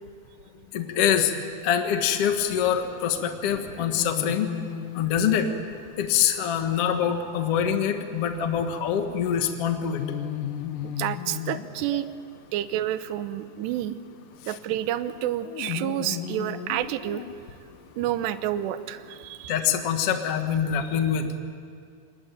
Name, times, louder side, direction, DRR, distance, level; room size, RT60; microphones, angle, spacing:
voice 1, 0.7-1.3 1.6-4.5 4.9-5.5 6.0-10.0 11.9-12.0 14.4-14.5 19.5-21.4, left 8 dB, 60° left, 6 dB, 1.6 m, -25 dB
sound 1, 2.4-19.9, left 10 dB, 80° left, 1.9 m, -39 dB
voice 2, 10.8-12.1 12.5-14.0 14.4-17.2 18.0-19.5, right 12 dB, 75° right, 12 dB, 2.9 m, -29 dB
27.0 x 21.0 x 9.2 m, 2.2 s
omnidirectional pair, 5.3 m